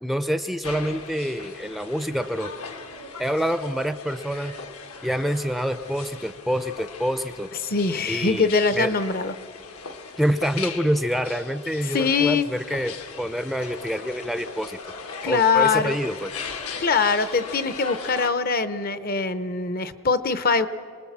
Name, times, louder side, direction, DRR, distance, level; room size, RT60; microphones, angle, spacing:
voice 1, 0.0-2.5 3.2-4.5 5.0-7.5 8.1-8.9 10.2-14.8 15.3-16.3, equal, ahead, 9 dB, 0.5 m, -27 dB
sound 1, 0.6-18.3, left 5 dB, 75° left, 1.6 m, -38 dB
voice 2, 7.7-9.3 11.9-12.5 15.2-16.0 16.8-20.7, left 5 dB, 40° left, 12 dB, 0.8 m, -22 dB
27.5 x 20.0 x 7.4 m, 2.2 s
head